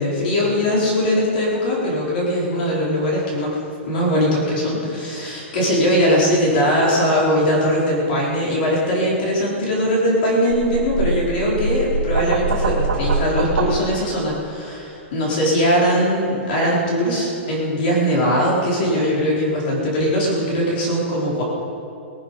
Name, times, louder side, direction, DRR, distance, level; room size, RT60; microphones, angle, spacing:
voice 1, 0.0-3.6 3.9-21.4, equal, 45° left, -5 dB, 4.4 m, -20 dB
sound 1, 10.5-13.7, right 3 dB, 90° right, 2.9 m, -23 dB
19.5 x 10.0 x 5.7 m, 2.7 s
hypercardioid pair, 165°, 7 cm